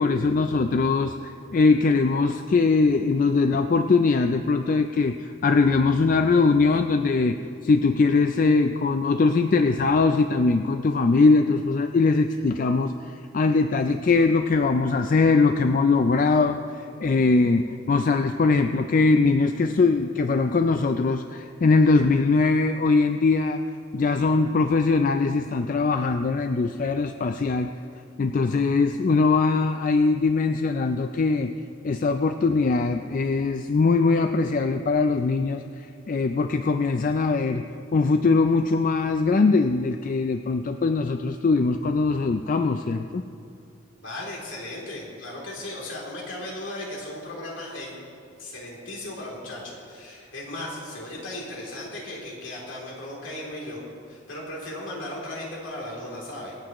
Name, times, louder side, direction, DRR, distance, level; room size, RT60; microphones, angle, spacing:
voice 1, 0.0-7.4 7.6-23.6 23.9-27.7 28.2-31.5 31.8-37.6 37.9-43.2, left 3 dB, 40° left, 7 dB, 0.4 m, -21 dB
voice 2, 44.0-47.9 48.4-53.8 54.1-56.6, left 1 dB, 70° left, -4 dB, 3.0 m, -36 dB
25.5 x 8.7 x 3.0 m, 2.4 s
head